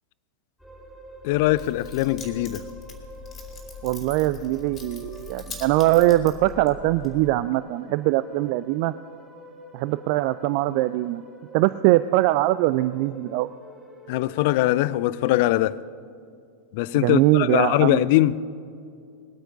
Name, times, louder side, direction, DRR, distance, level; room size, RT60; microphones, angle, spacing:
sound 1, 0.6-15.0, right 1 dB, 5° right, 4.4 m, -46 dB
voice 1, 1.2-2.6 14.1-15.8 16.7-18.4, left 16 dB, 50° left, 0.4 m, -21 dB
Keys jangling, 1.3-7.3, left 4 dB, 25° left, 2.4 m, -41 dB
voice 2, 3.8-8.9 9.7-11.2 11.5-13.5 17.0-18.1, right 16 dB, 45° right, 0.3 m, -22 dB
21.0 x 8.8 x 5.2 m
figure-of-eight pair, 90°, 0 cm